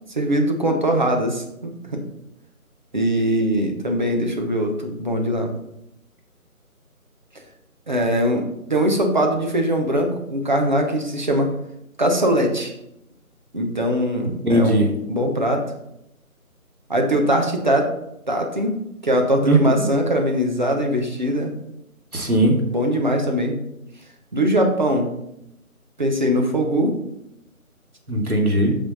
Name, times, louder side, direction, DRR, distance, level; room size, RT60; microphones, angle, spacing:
voice 1, 0.1-2.0 2.9-5.5 7.9-11.5 12.0-12.7 13.5-15.6 16.9-17.9 18.3-18.7 19.0-21.5 22.7-23.6 24.3-25.1 26.0-26.9, equal, 30° right, 2 dB, 1.1 m, -21 dB
voice 2, 14.4-14.9 19.4-19.9 22.1-22.6 28.1-28.8, right 1 dB, 80° right, 0 dB, 2.6 m, -18 dB
8.6 x 5.5 x 4.1 m, 0.81 s
figure-of-eight pair, 165°, 44 cm